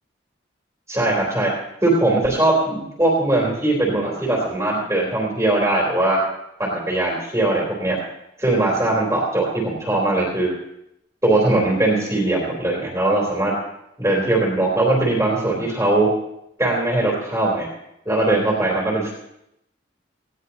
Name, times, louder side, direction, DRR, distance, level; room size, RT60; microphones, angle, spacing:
voice 1, 0.9-1.5 1.8-6.2 6.6-8.0 8.4-10.5 11.2-13.5 14.0-16.1 16.6-17.7 18.1-19.1, right 2 dB, 15° right, -4 dB, 3.5 m, -20 dB
19.0 x 16.0 x 2.9 m, 0.80 s
head